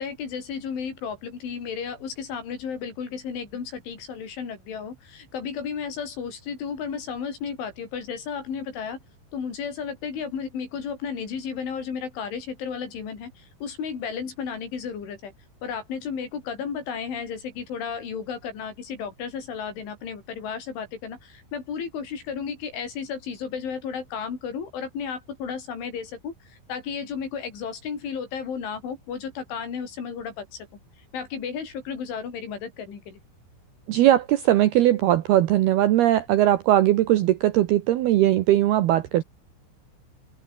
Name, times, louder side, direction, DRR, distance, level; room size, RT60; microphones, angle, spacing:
voice 1, 0.0-9.0 9.3-15.3 15.6-30.7 31.1-33.2, left 6 dB, 75° left, 7.8 m, -33 dB
voice 2, 33.9-39.2, right 13 dB, 70° right, 2.6 m, -19 dB
omnidirectional pair, 5.6 m